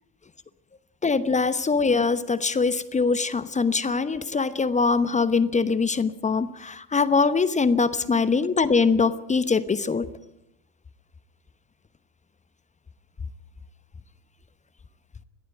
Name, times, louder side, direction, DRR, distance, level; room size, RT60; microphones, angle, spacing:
voice 1, 1.0-10.1, left 4 dB, 15° left, 15 dB, 1.0 m, -23 dB
21.5 x 15.0 x 9.1 m, 0.82 s
figure-of-eight pair, 75°, 48 cm